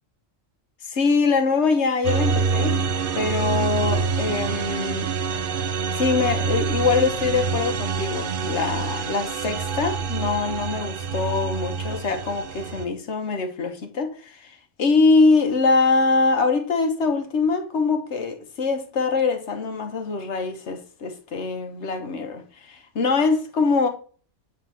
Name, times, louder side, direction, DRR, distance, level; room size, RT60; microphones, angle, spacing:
voice 1, 0.8-2.7 3.1-5.1 6.0-23.9, left 4 dB, 70° left, 1.3 m, -23 dB
sound 1, 2.0-12.8, right 5 dB, 55° right, 0.7 m, -26 dB
7.7 x 5.8 x 3.4 m
omnidirectional pair, 1.2 m